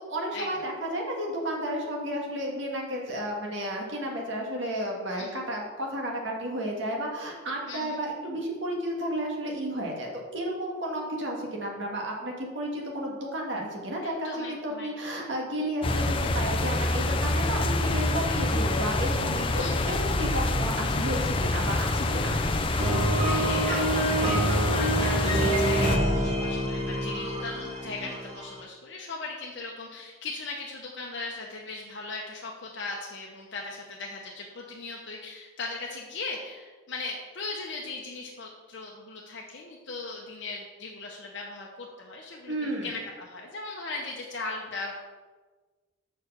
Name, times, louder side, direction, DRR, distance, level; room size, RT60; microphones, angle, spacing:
voice 1, 0.0-22.4 42.5-42.9, right 1 dB, 65° right, -1 dB, 1.7 m, -32 dB
voice 2, 7.7-8.0 14.0-14.9 19.6-20.0 23.1-44.9, left 3 dB, 60° left, -1 dB, 0.9 m, -38 dB
sound 1, 15.8-26.0, left 2 dB, 25° left, 0.4 m, -26 dB
sound 2, 22.8-28.6, right 1 dB, 35° right, 1.3 m, -27 dB
6.5 x 4.7 x 6.7 m, 1.3 s
head